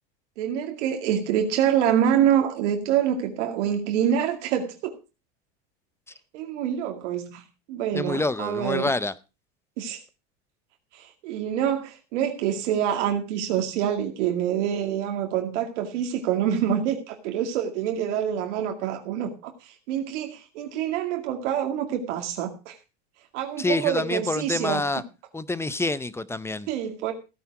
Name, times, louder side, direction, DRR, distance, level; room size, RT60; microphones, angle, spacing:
voice 1, 0.4-5.0 6.3-7.4 7.7-8.9 9.8-10.0 10.9-22.7 23.3-24.8 26.7-27.1, right 9 dB, 75° right, 2.3 m, -26 dB
voice 2, 7.9-9.1 23.6-25.0 25.3-26.7, left 2 dB, 5° left, 0.6 m, -27 dB
15.5 x 9.3 x 4.8 m
supercardioid pair, 125°, 36 cm